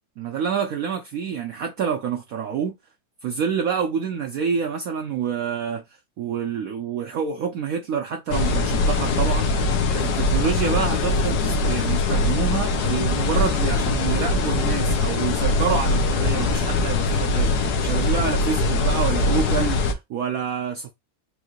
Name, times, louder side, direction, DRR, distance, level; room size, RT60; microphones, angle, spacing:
voice 1, 0.2-2.8 3.2-5.8 6.2-17.5 17.8-20.9, right 7 dB, 85° right, 0.7 m, -27 dB
sound 1, 8.3-19.9, left 3 dB, 65° left, 1.2 m, -22 dB
4.9 x 2.6 x 3.0 m
omnidirectional pair, 2.1 m